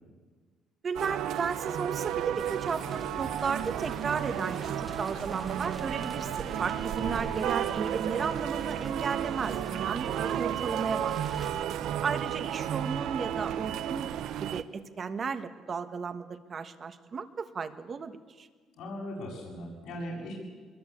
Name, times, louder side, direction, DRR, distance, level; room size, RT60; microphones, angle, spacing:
voice 1, 0.8-11.1 11.6-11.7 12.0-14.1 14.4-18.5, right 5 dB, 35° right, 10 dB, 1.5 m, -34 dB
sound 1, 0.9-14.6, right 10 dB, 75° right, 1.0 m, -33 dB
sound 2, 2.3-11.5, right 1 dB, 5° right, 1.2 m, -45 dB
voice 2, 7.0-7.4 18.8-20.3, left 1 dB, 80° left, -4 dB, 8.0 m, -39 dB
24.0 x 21.5 x 8.7 m, 1.5 s
cardioid pair, 150°, 0 cm